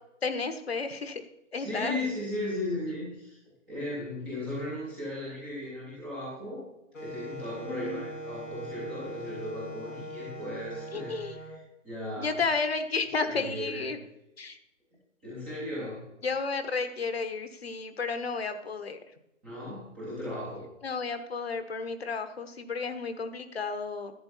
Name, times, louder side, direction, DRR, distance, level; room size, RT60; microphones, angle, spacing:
voice 1, 0.2-1.2 1.5-2.0 7.7-8.0 10.9-11.4 12.2-14.0 14.4-14.6 16.2-19.0 20.8-24.1, left 4 dB, 50° left, 9 dB, 1.2 m, -32 dB
voice 2, 1.6-3.4 3.7-6.6 7.0-11.2 11.4-11.6 11.8-12.4 13.2-13.9 15.2-16.0 19.4-20.7, left 1 dB, 5° right, -10 dB, 0.7 m, -36 dB
Wind instrument woodwind instrument, 6.9-11.6, right 1 dB, 85° left, 4.2 m, -41 dB
11.5 x 8.9 x 4.2 m, 0.88 s
figure-of-eight pair, 150°, 38 cm